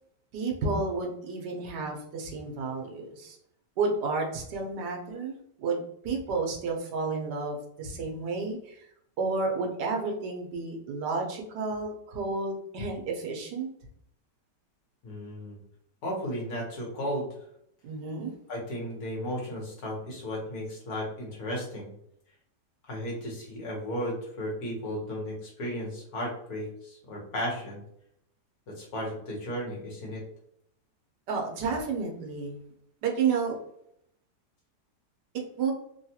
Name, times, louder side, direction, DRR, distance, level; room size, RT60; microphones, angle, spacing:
voice 1, 0.3-3.4 3.8-8.9 9.2-13.7 17.8-18.3 31.3-32.6 33.0-33.6 35.6-35.7, right 4 dB, 80° right, 2 dB, 1.3 m, -31 dB
voice 2, 15.0-15.6 16.0-17.4 18.5-21.9 22.9-27.8 28.7-30.2, equal, 60° left, -3 dB, 1.4 m, -34 dB
3.4 x 2.3 x 2.8 m, 0.72 s
omnidirectional pair, 1.8 m